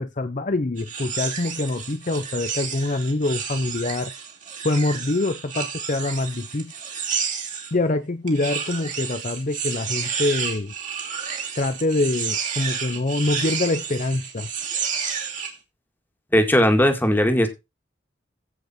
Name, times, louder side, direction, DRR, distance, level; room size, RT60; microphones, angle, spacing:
voice 1, 0.0-4.1 4.6-6.7 7.7-10.7 11.6-14.5, left 2 dB, 45° left, 0.8 m, -25 dB
sound 1, 0.8-7.7 8.3-15.5, right 6 dB, 45° right, 2.8 m, -30 dB
voice 2, 16.3-17.5, equal, 10° left, 2.1 m, -18 dB
15.5 x 5.4 x 4.4 m
head